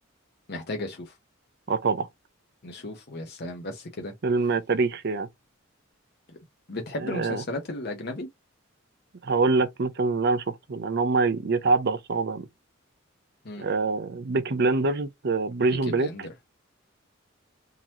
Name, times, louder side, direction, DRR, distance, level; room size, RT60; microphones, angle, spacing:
voice 1, 0.5-1.1 2.6-4.1 6.3-6.4 6.7-8.3 13.4-13.7 15.9-16.3, left 1 dB, 55° left, 0.9 m, -35 dB
voice 2, 1.7-2.1 4.2-5.3 7.0-7.4 9.2-12.5 13.6-16.1, right 3 dB, 55° right, 0.6 m, -25 dB
3.8 x 3.0 x 2.8 m
head